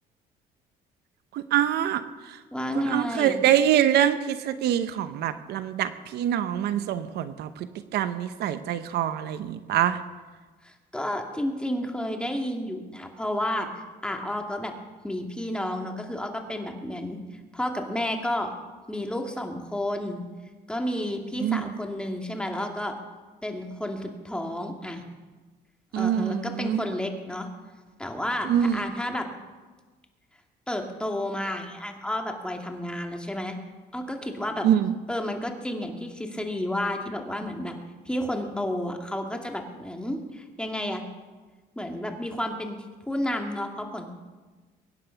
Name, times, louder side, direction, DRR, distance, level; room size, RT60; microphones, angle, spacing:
voice 1, 1.3-2.4 2.7-10.0 21.4-21.6 25.9-26.8 28.4-28.9 34.6-34.9, right 10 dB, 75° right, 12 dB, 0.9 m, -25 dB
voice 2, 2.5-3.4 10.6-14.7 15.0-17.2 17.5-18.5 18.9-20.2 20.7-22.9 23.4-25.0 26.0-27.5 28.0-29.3 30.7-33.6 33.9-34.7 35.1-37.7 38.1-41.0 41.8-42.8 43.1-44.1, left 1 dB, 5° left, 3 dB, 2.3 m, -31 dB
23.0 x 9.9 x 5.8 m, 1.3 s
cardioid pair, 110°, 17 cm